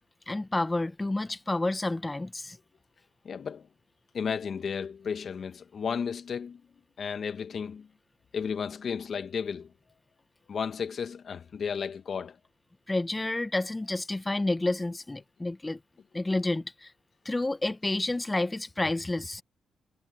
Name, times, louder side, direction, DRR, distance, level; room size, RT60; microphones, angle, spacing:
voice 1, 0.3-2.6 12.9-15.8 16.1-16.9 17.2-19.4, left 2 dB, 20° left, 1.3 m, -30 dB
voice 2, 3.2-3.7 4.1-6.6 7.0-7.9 8.3-9.7 10.5-12.4, left 6 dB, 55° left, 1.6 m, -33 dB
cardioid pair, 70°, 0 cm